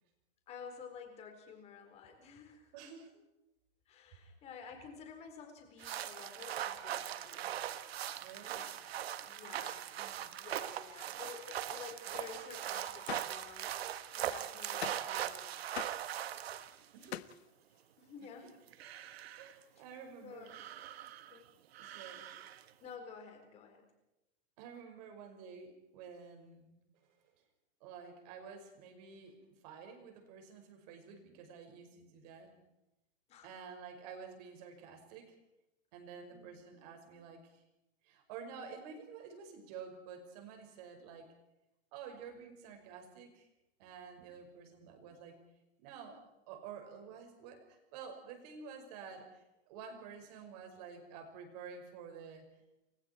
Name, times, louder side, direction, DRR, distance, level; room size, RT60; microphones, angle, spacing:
voice 1, 0.5-2.7 3.9-7.5 8.4-13.7 14.1-15.7 18.0-18.6 19.8-19.9 20.2-20.5 21.3-21.5 22.3-22.4 22.8-23.8 33.3-33.6 36.3-36.5, left 6 dB, 20° left, 4 dB, 4.3 m, -51 dB
voice 2, 2.7-3.1 8.2-8.6 10.0-10.3 16.9-17.3 19.3-20.5 21.8-22.3 24.6-26.8 27.8-32.6 33.4-35.4 35.9-37.6 38.0-41.3 41.9-43.5 43.8-45.4 45.8-52.5, right 6 dB, 35° right, 5 dB, 5.5 m, -50 dB
sound 1, 5.8-17.1 18.5-19.5 20.5-21.4 21.7-22.7, right 11 dB, 60° right, 1.7 m, -41 dB
sound 2, 13.0-13.3 14.1-14.2 14.8-15.2 15.5-16.0 16.4-16.5 16.7-17.4, left 11 dB, 65° left, 1.4 m, -43 dB
29.0 x 24.0 x 4.5 m, 0.93 s
supercardioid pair, 175°, 35 cm